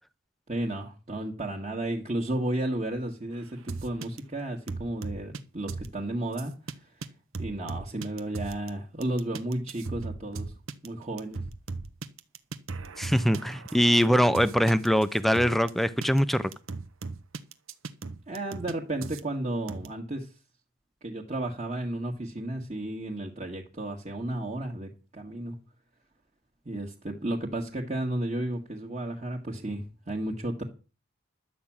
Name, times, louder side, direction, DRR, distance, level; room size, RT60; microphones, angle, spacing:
voice 1, 0.5-7.1 7.4-10.5 10.8-11.4 18.3-20.3 21.0-25.6 26.7-30.6, right 1 dB, 30° right, 1.7 m, -33 dB
sound 1, 3.7-4.2 4.7-5.4 5.7-5.9 6.4-6.7 7.0-7.1 7.3-8.7 9.0-15.7 16.0-16.2 16.5-18.7 19.0-19.2 19.7-19.9, right 3 dB, 70° right, 1.1 m, -37 dB
voice 2, 13.0-16.5, equal, ahead, 0.6 m, -23 dB
11.5 x 6.0 x 8.7 m
head